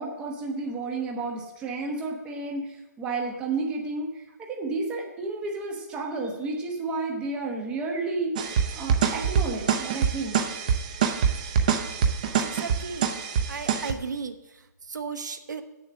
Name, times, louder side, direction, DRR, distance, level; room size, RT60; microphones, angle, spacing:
voice 1, 0.0-10.4, right 3 dB, 10° right, 0 dB, 1.0 m, -31 dB
sound 1, 8.4-13.9, right 7 dB, 25° right, 0.6 m, -25 dB
voice 2, 12.4-13.1 13.5-14.3 14.9-15.6, right 5 dB, 75° right, 8 dB, 1.1 m, -34 dB
7.9 x 7.0 x 7.2 m, 0.98 s
hypercardioid pair, 170°, 10 cm